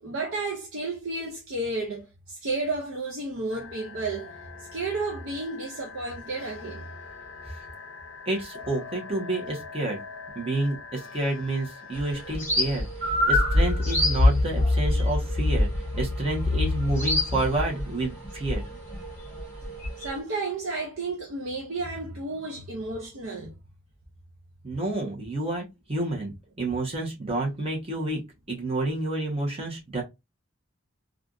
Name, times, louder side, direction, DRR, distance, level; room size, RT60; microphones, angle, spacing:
voice 1, 0.0-4.4 4.7-6.9 20.0-23.5, right 3 dB, 65° right, 0.6 m, -32 dB
sound 1, 3.5-12.4, left 5 dB, 70° left, 0.6 m, -43 dB
voice 2, 8.3-10.0 10.3-15.7 15.9-18.6 24.6-26.3 26.6-28.2 28.5-30.0, right 2 dB, 25° right, 1.1 m, -29 dB
sound 2, 11.9-20.2, left 1 dB, 10° left, 1.3 m, -25 dB
3.4 x 2.4 x 2.4 m
head